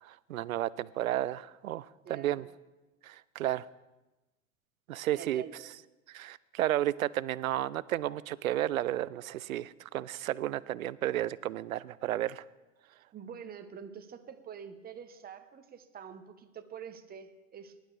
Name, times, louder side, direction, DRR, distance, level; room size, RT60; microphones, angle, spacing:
voice 1, 0.0-2.5 3.0-3.7 4.9-5.4 6.1-12.4, right 13 dB, 85° right, 20 dB, 0.6 m, -32 dB
voice 2, 2.0-2.4 5.1-5.7 13.1-17.9, right 7 dB, 20° right, 8 dB, 1.1 m, -46 dB
19.5 x 11.5 x 3.4 m, 1.1 s
hypercardioid pair, 100°, 40 cm